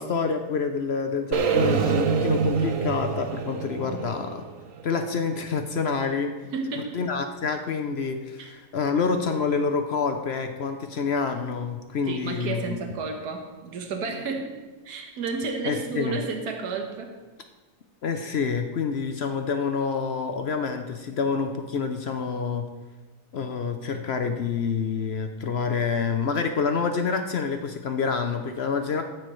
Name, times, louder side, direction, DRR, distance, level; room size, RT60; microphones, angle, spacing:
voice 1, 0.0-4.4 4.8-6.3 6.9-12.8 15.6-16.2 18.0-22.6 23.3-29.0, left 5 dB, 60° left, 6 dB, 0.7 m, -27 dB
sound 1, 1.3-5.4, right 6 dB, 60° right, 1.0 m, -26 dB
voice 2, 3.7-4.2 6.5-7.0 8.4-8.5 9.0-9.2 12.0-14.6 14.8-17.2, right 4 dB, 80° right, 3 dB, 1.6 m, -32 dB
13.5 x 9.0 x 3.1 m, 1.2 s
omnidirectional pair, 1.7 m